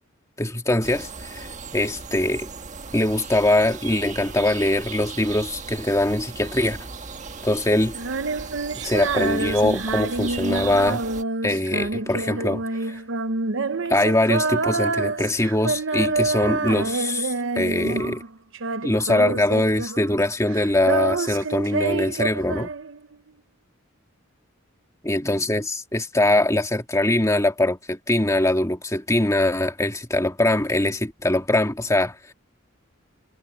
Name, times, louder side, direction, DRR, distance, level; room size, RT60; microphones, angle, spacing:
voice 1, 0.4-2.5 2.9-6.8 7.4-8.0 8.7-11.0 11.4-13.0 13.9-18.2 18.8-22.7 25.0-32.2, left 1 dB, 15° left, 2.0 m, -22 dB
sound 1, 0.8-11.2, right 4 dB, 40° right, 1.4 m, -37 dB
Female singing, 7.9-18.3 18.5-20.2 20.5-23.2, right 3 dB, 65° right, 0.9 m, -27 dB
head